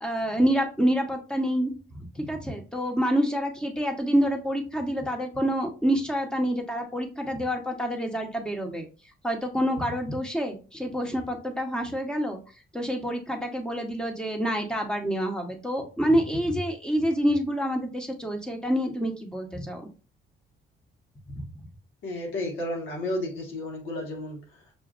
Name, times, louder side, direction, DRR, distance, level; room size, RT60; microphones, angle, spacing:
voice 1, 0.0-1.7 2.2-8.8 9.2-12.4 12.7-19.9 21.3-21.5, equal, 5° left, 3 dB, 1.0 m, -27 dB
voice 2, 22.0-24.7, left 1 dB, 85° left, 0 dB, 1.6 m, -32 dB
6.0 x 2.5 x 2.5 m, 0.34 s
cardioid pair, 90°, 20 cm